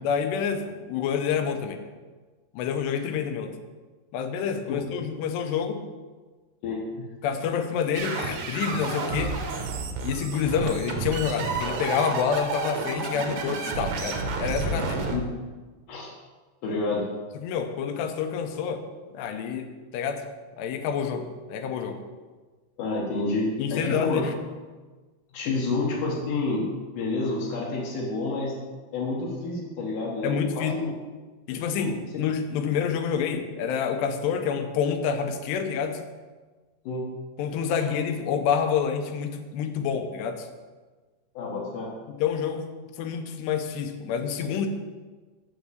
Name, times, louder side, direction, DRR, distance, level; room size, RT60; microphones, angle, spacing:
voice 1, 0.0-1.8 2.5-3.5 4.1-5.8 7.2-9.4 10.0-15.0 17.4-18.8 19.1-19.7 19.9-20.2 20.6-22.0 23.6-24.3 30.2-30.7 31.5-36.0 37.4-40.5 42.1-42.6 43.0-44.7, left 7 dB, 85° left, 7 dB, 2.9 m, -28 dB
voice 2, 6.6-7.1 7.4-7.5 15.1-15.2 15.9-16.1 16.6-17.1 22.8-24.3 25.3-28.6 28.9-30.9 31.8-31.9 32.6-32.8 36.8-37.1 37.8-37.9 41.3-41.9, left 3 dB, 65° left, -4 dB, 2.3 m, -29 dB
sound 1, 7.9-15.2, right 4 dB, 85° right, 1.7 m, -30 dB
6.9 x 6.4 x 7.7 m, 1.3 s
omnidirectional pair, 4.9 m